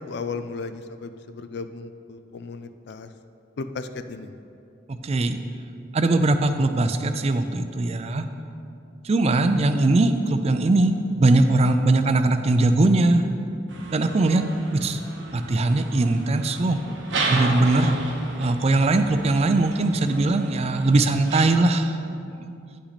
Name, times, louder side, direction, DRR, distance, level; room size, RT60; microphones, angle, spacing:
voice 1, 0.0-3.1 3.6-4.4, left 4 dB, 65° left, 10 dB, 0.4 m, -35 dB
voice 2, 4.9-5.4 5.9-8.2 9.0-13.2 13.9-14.4 14.7-15.0 15.3-16.8 17.3-18.0 18.4-22.0 22.4-22.5, right 2 dB, 35° right, 8 dB, 0.4 m, -20 dB
sound 1, 13.7-21.5, right 2 dB, 80° right, 1.0 m, -33 dB
9.8 x 5.9 x 4.1 m, 2.5 s
head